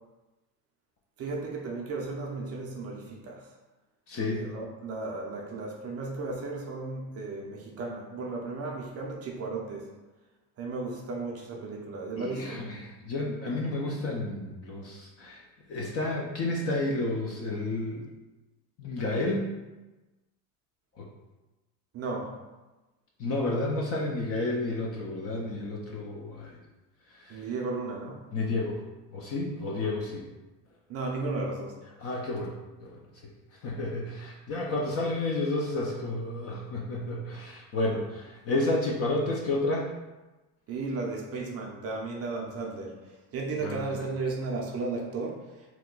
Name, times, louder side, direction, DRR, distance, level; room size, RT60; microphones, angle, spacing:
voice 1, 1.2-3.4 4.3-9.9 10.6-12.7 21.9-22.3 27.3-28.2 30.9-31.8 40.7-43.0 43.3-45.4, right 3 dB, 35° right, 0 dB, 0.4 m, -34 dB
voice 2, 4.1-4.5 12.2-15.4 15.7-18.1 18.8-19.5 21.0-21.1 23.2-26.6 27.1-27.5 28.3-28.8 29.1-30.2 32.0-32.5 32.8-33.0 33.6-39.9 43.6-44.0, left 2 dB, 35° left, -2 dB, 0.4 m, -31 dB
2.9 x 2.2 x 3.7 m, 1.1 s
supercardioid pair, 115°, 49 cm